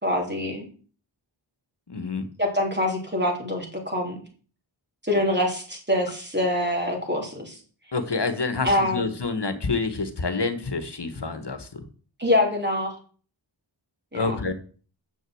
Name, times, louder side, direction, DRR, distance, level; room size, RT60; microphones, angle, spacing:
voice 1, 0.0-0.7 2.4-4.2 5.0-7.6 8.6-9.0 12.2-12.9 14.1-14.3, left 1 dB, 20° right, 0 dB, 3.4 m, -25 dB
voice 2, 1.9-2.2 7.9-11.9 14.1-14.5, left 4 dB, 60° left, 10 dB, 1.5 m, -28 dB
7.4 x 6.4 x 7.8 m, 0.41 s
wide cardioid pair, 65°, 47 cm